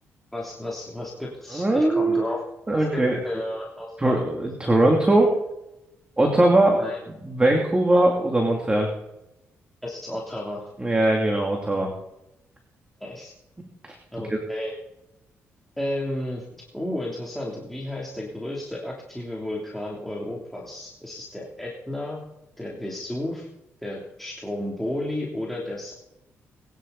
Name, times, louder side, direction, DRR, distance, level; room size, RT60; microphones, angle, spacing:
voice 1, 0.3-2.4 2.7-4.2 6.8-7.0 9.8-10.6 13.0-13.3 14.1-14.7 15.8-16.4 16.7-22.2 22.6-23.5 23.8-25.9, left 1 dB, 5° left, -4 dB, 3.2 m, -32 dB
voice 2, 1.5-2.2 2.7-3.2 4.0-5.3 6.2-6.8 7.2-8.9 10.8-11.9 13.8-13.9 14.3-14.4, right 1 dB, 20° right, 1 dB, 2.9 m, -20 dB
21.5 x 11.0 x 4.2 m, 0.88 s
cardioid pair, 90°, 5 cm